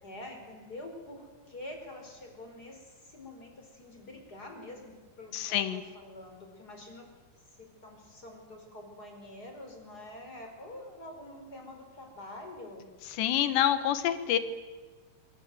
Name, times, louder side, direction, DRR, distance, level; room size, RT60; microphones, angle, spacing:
voice 1, 0.0-7.1 7.6-12.9, left 1 dB, 20° left, 3 dB, 4.9 m, -46 dB
voice 2, 5.3-5.8 13.2-14.4, left 11 dB, 75° left, 11 dB, 3.4 m, -27 dB
25.5 x 24.5 x 7.9 m, 1.4 s
omnidirectional pair, 5.3 m